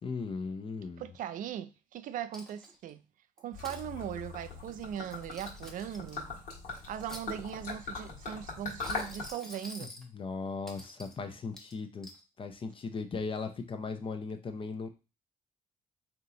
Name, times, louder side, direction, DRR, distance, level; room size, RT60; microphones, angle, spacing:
voice 1, 0.0-1.0 10.1-12.1 12.4-14.9, left 4 dB, 40° left, 0.7 m, -37 dB
voice 2, 1.0-3.0 3.4-6.4 6.9-9.9, right 10 dB, 70° right, 0.4 m, -39 dB
Coin (dropping), 2.3-2.9 3.4-3.8 5.0-6.1 6.8-7.7 8.6-10.1 10.7-11.2 11.6-12.2, left 1 dB, 5° left, 0.9 m, -48 dB
Gurgling / Liquid, 3.5-9.3, left 4 dB, 70° left, 1.5 m, -41 dB
3.6 x 2.9 x 3.8 m
cardioid pair, 100°, 14 cm